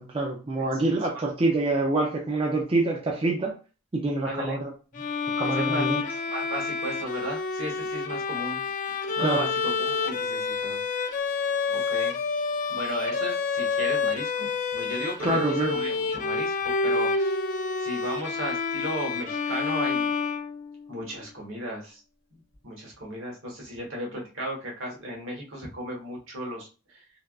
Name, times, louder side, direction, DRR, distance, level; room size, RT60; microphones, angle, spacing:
voice 1, 0.0-3.5 3.9-4.7 5.4-6.0 9.2-9.5 15.2-15.8, right 2 dB, 25° right, -1 dB, 0.4 m, -26 dB
voice 2, 4.2-4.6 5.6-5.9 6.2-8.6 9.2-15.4 15.7-17.4 17.8-20.1 20.9-22.0 22.3-22.4 22.6-27.0, right 1 dB, 70° right, -1 dB, 1.2 m, -35 dB
Bowed string instrument, 4.9-20.9, left 4 dB, 40° left, 0.3 m, -28 dB
3.3 x 2.3 x 2.4 m, 0.33 s
head